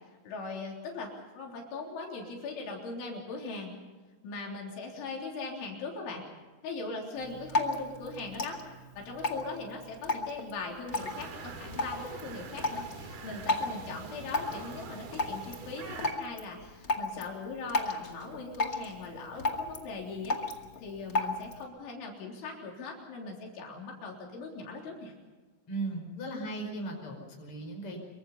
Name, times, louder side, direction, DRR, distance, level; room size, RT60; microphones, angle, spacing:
voice 1, 0.2-3.7 4.2-6.2 6.6-8.6 9.0-20.4 20.8-25.1, left 3 dB, 80° left, -1 dB, 6.0 m, -40 dB
Drip, 7.1-21.6, left 2 dB, 45° left, 1.1 m, -35 dB
sound 1, 10.9-16.1, right 4 dB, 55° right, 4.2 m, -44 dB
voice 2, 25.7-28.0, right 2 dB, 30° left, 2 dB, 5.9 m, -37 dB
26.0 x 24.0 x 5.5 m, 1.3 s
omnidirectional pair, 5.4 m